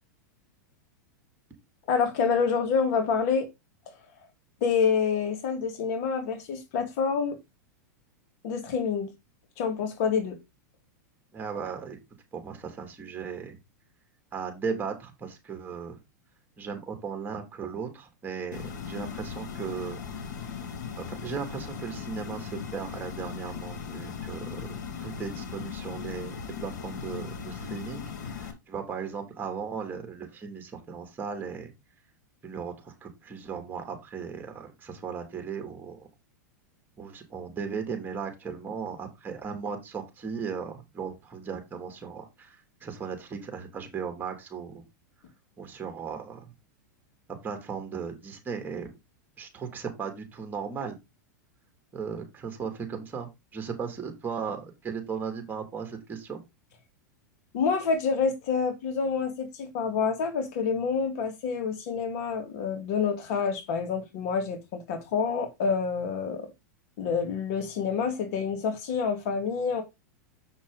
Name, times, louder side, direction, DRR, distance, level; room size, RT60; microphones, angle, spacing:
voice 1, 1.9-3.5 4.6-7.4 8.4-9.1 9.6-10.4 57.5-66.5 67.0-69.8, left 5 dB, 55° left, 2.1 m, -27 dB
voice 2, 11.3-12.0 12.3-13.6 14.3-16.0 16.6-20.0 21.0-31.7 32.4-36.1 37.0-44.8 45.6-46.4 47.4-49.0 49.4-51.0 51.9-56.4, right 6 dB, 20° right, 2.7 m, -37 dB
sound 1, 18.5-28.5, left 6 dB, 75° left, 2.3 m, -38 dB
7.3 x 6.1 x 3.9 m
hypercardioid pair, 115°, 10 cm